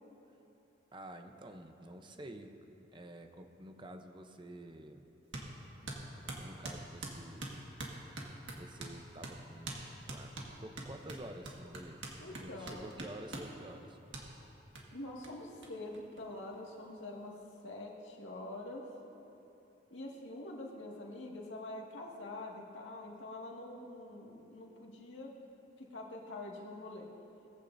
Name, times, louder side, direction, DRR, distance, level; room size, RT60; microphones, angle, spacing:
voice 1, 0.9-2.5 2.9-5.1 6.2-7.7 8.5-10.3 10.6-12.0 12.3-14.0, right 1 dB, 25° right, 6 dB, 0.8 m, -49 dB
sound 1, 5.3-5.5 5.9-9.0 9.2-9.4 9.7-9.8 10.1-13.5 14.1-14.3 14.8-14.9 15.2-15.3 15.6-15.7 15.9-16.7, right 2 dB, 75° right, 1.8 m, -43 dB
voice 2, 12.2-12.9 14.9-17.3 17.6-18.9 19.9-25.3 25.8-27.1, left 2 dB, 70° left, -2 dB, 2.0 m, -45 dB
20.5 x 15.0 x 2.7 m, 2.9 s
head